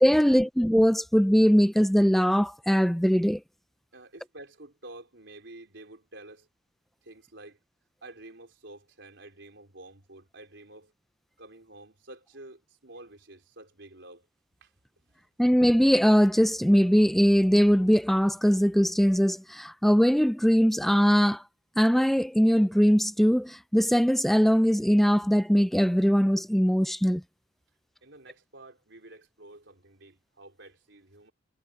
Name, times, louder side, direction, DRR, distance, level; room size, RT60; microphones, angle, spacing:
voice 1, 0.0-3.4 15.4-21.4 21.8-27.2, equal, ahead, 0.4 m, -21 dB
voice 2, 3.9-6.5 7.0-7.6 8.0-10.9 11.4-14.3 14.6-14.7 15.0-15.3 28.0-31.3, right 2 dB, 60° right, 4.4 m, -49 dB
head